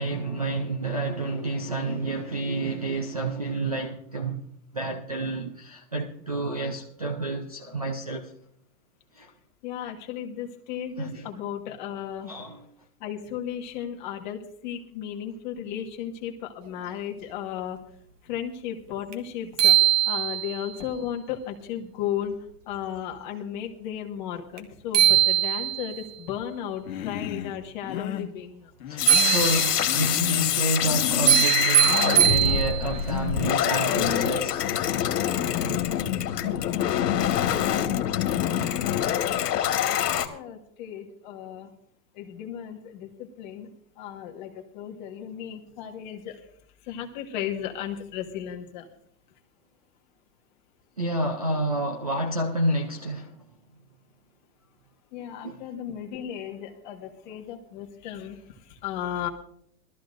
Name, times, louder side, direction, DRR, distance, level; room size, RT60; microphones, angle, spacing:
voice 1, 0.0-4.4 4.7-8.3 9.1-9.3 11.0-11.3 12.3-12.6 28.9-34.8 51.0-53.4 55.2-55.6, right 2 dB, 25° right, 0.4 m, -29 dB
voice 2, 9.6-12.3 13.0-17.8 18.2-19.7 20.1-22.3 22.7-28.7 36.4-38.2 39.9-41.7 42.1-43.7 44.0-46.4 46.8-48.9 55.1-59.3, left 10 dB, 30° left, 1.5 m, -35 dB
sound 1, 19.1-19.2 19.6-20.7 24.6-24.7 24.9-26.0 29.1-30.0 31.3-33.0, right 13 dB, 50° right, 1.5 m, -21 dB
Human voice, 26.9-27.5 27.8-28.3 28.8-29.5 29.8-30.6 30.8-31.5 31.8-32.2 32.8-33.4 33.9-34.3, left 9 dB, 60° left, 1.5 m, -33 dB
sound 2, 29.0-40.3, left 10 dB, 75° left, 1.8 m, -25 dB
21.0 x 13.5 x 2.6 m
supercardioid pair, 180°, 48 cm